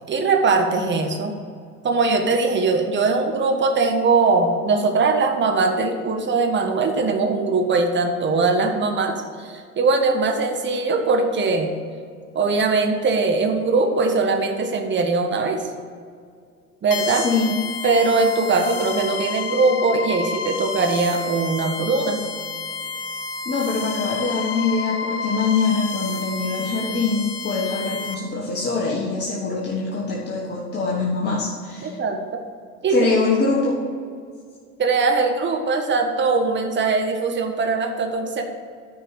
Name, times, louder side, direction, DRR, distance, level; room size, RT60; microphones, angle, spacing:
voice 1, 0.1-1.3 1.8-11.7 12.3-15.7 16.8-17.3 17.8-22.2 31.8-32.4 32.8-33.0 34.8-38.4, right 3 dB, 25° right, 3 dB, 1.3 m, -21 dB
sound 1, 16.9-28.1, left 4 dB, 60° left, 1.0 m, -30 dB
voice 2, 17.1-17.5 23.4-32.0 32.9-33.8, left 4 dB, 25° left, -4 dB, 1.4 m, -23 dB
10.0 x 4.7 x 6.8 m, 2.1 s
figure-of-eight pair, 80°, 45 cm